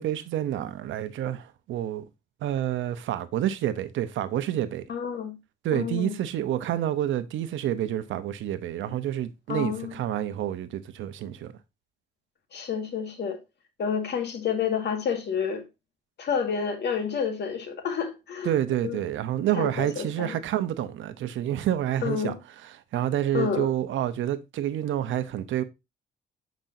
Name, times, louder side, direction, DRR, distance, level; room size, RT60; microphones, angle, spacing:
voice 1, 0.0-2.1 2.4-4.8 5.6-11.5 18.4-22.3 22.6-25.6, right 11 dB, 80° right, 0.7 m, -28 dB
voice 2, 4.9-5.4 5.7-6.1 9.5-9.9 12.5-13.4 13.8-15.6 16.2-18.5 18.8-19.1 19.6-20.4 22.0-22.4 23.3-23.7, left 7 dB, 60° left, 1.8 m, -29 dB
7.4 x 5.1 x 2.6 m
cardioid pair, 90°, 20 cm